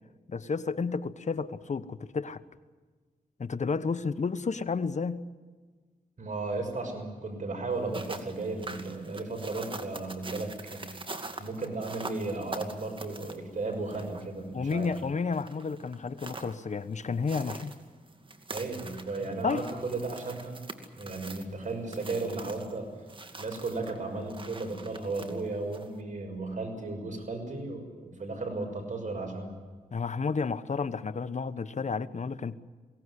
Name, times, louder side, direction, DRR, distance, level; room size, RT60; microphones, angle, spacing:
voice 1, 0.3-2.4 3.4-5.3 14.5-17.7 19.4-19.7 29.9-32.5, left 5 dB, 55° left, 1.2 m, -31 dB
voice 2, 6.2-10.9 11.4-14.9 18.5-20.6 21.0-22.9 23.4-29.6, right 3 dB, 60° right, 6.1 m, -35 dB
sound 1, 7.7-26.0, right 2 dB, 35° right, 2.3 m, -45 dB
22.5 x 17.5 x 9.9 m
cardioid pair, 75°, 15 cm